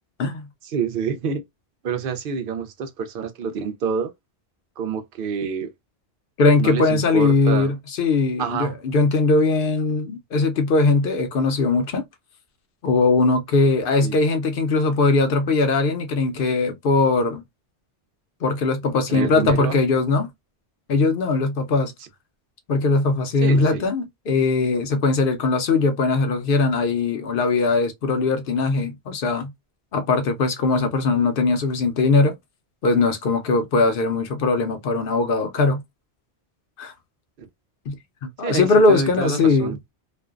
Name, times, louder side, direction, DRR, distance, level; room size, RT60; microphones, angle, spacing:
voice 1, 0.6-1.4 1.8-4.1 4.8-5.7 6.6-7.7 8.4-8.7 14.0-14.2 19.1-19.8 23.4-23.9 37.4-37.5 38.4-39.8, right 6 dB, 60° right, 0.7 m, -27 dB
voice 2, 6.4-12.0 12.8-17.4 18.4-20.3 20.9-21.9 22.7-29.5 29.9-32.3 32.8-35.8 36.8-36.9 37.9-39.7, left 3 dB, 60° left, 0.7 m, -20 dB
2.5 x 2.1 x 2.3 m
omnidirectional pair, 1.1 m